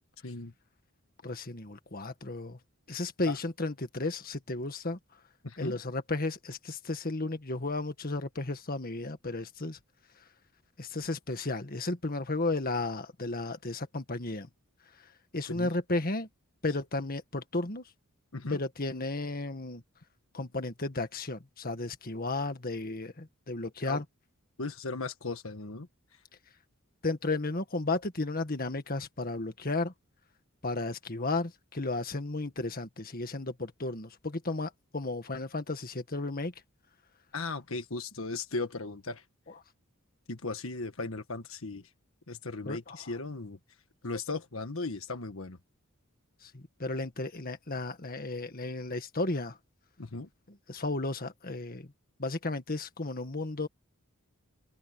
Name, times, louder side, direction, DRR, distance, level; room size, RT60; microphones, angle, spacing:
voice 1, 1.2-2.6 2.9-5.0 5.6-9.8 10.8-14.5 15.3-16.3 16.6-17.8 18.5-19.8 20.3-24.0 27.0-29.9 30.6-36.5 42.6-43.1 46.4-49.6 50.7-51.9 52.2-53.7, left 2 dB, 45° left, 1.8 m, -34 dB
voice 2, 5.4-5.8 15.5-15.7 18.3-18.6 23.9-24.0 24.6-25.9 37.3-39.2 40.3-41.9 42.3-43.6 44.0-45.6 50.0-50.3, left 3 dB, 70° left, 1.6 m, -37 dB
open air
head